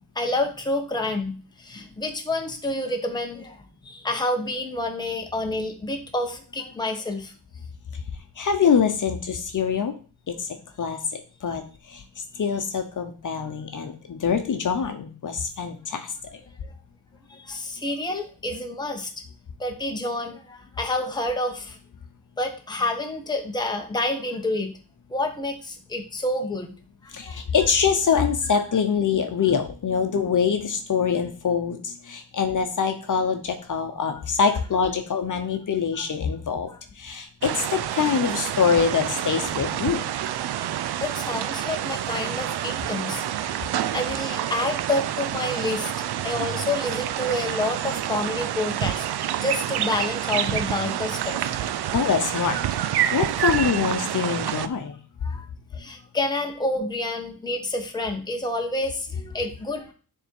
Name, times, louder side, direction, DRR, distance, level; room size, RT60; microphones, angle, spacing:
voice 1, 0.1-3.6 3.8-7.3 16.6-16.7 17.3-19.1 19.6-21.8 22.4-24.7 25.1-26.7 27.0-27.4 35.9-36.1 36.7-36.8 40.3-43.2 43.6-45.9 46.2-49.1 49.4-51.4 55.2-55.5 55.7-59.9, left 2 dB, 10° left, 3 dB, 1.0 m, -29 dB
voice 2, 8.4-9.9 10.8-11.0 11.4-11.6 11.9-12.0 12.4-16.1 27.1-36.7 37.0-40.0 51.9-52.6 53.1-54.9, left 6 dB, 50° left, 5 dB, 1.0 m, -24 dB
sound 1, 37.4-54.7, right 11 dB, 70° right, 0.5 m, -28 dB
9.9 x 3.8 x 4.5 m, 0.38 s
wide cardioid pair, 145°, 40 cm